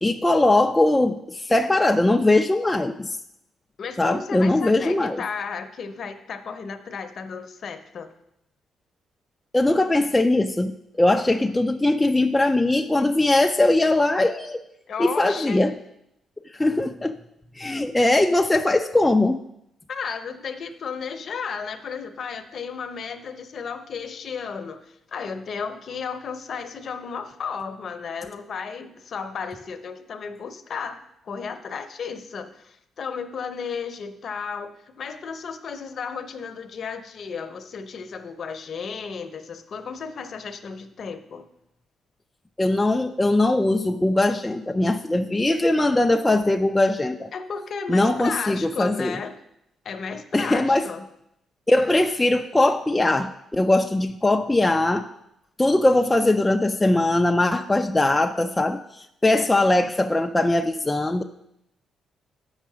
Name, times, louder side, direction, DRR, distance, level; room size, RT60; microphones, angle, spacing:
voice 1, 0.0-3.2 4.0-5.2 9.5-14.6 15.0-15.8 16.5-17.2 17.6-19.4 42.6-47.3 47.9-49.2 50.3-50.9 51.7-55.1 55.6-61.2, left 2 dB, 10° left, 5 dB, 0.3 m, -21 dB
voice 2, 3.8-8.1 14.2-14.3 14.9-15.6 19.9-41.5 47.3-49.4 49.8-51.1, left 6 dB, 50° left, 8 dB, 0.7 m, -34 dB
7.9 x 5.6 x 6.1 m, 0.80 s
cardioid pair, 145°, 0 cm